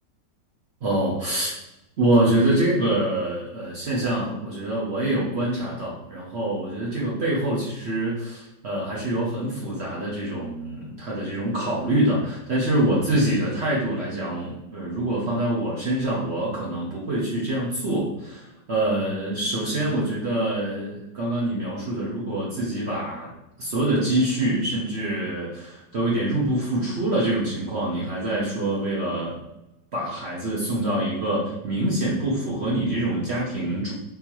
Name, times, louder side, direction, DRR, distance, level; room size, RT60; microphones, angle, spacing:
voice 1, 0.8-1.6 2.0-23.3 23.6-29.4 29.9-33.9, right 1 dB, 50° right, -5 dB, 0.8 m, -25 dB
3.8 x 2.8 x 2.9 m, 0.90 s
omnidirectional pair, 2.0 m